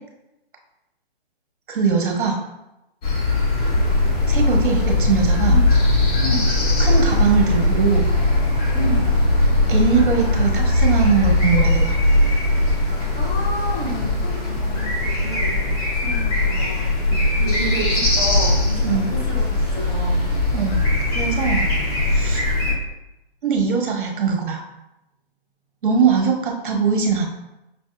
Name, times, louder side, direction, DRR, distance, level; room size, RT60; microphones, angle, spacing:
voice 1, 1.7-2.4 4.3-5.6 6.8-8.1 9.7-12.0 17.1-17.2 18.9-19.1 20.5-20.9 21.1-21.7 22.0-22.4 23.4-24.6 25.8-27.3, right 5 dB, 55° right, 2 dB, 1.0 m, -21 dB
sound 1, 3.0-22.7, left 2 dB, 35° left, 0.9 m, -19 dB
voice 2, 6.2-6.5 8.7-9.1 13.1-15.8 16.0-16.9 17.2-20.3, right 1 dB, 10° left, -6 dB, 0.4 m, -30 dB
5.6 x 2.6 x 2.3 m, 0.92 s
figure-of-eight pair, 135°, 32 cm